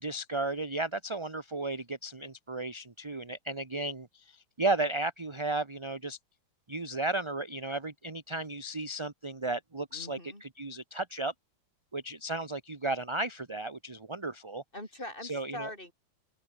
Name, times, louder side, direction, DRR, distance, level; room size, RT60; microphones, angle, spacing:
voice 1, 0.0-6.2 6.7-11.3 11.9-14.6 15.2-15.7, right 2 dB, 20° right, 1.0 m, -34 dB
voice 2, 9.9-10.4 14.7-15.9, left 1 dB, 25° left, 7.5 m, -42 dB
open air
omnidirectional pair, 2.3 m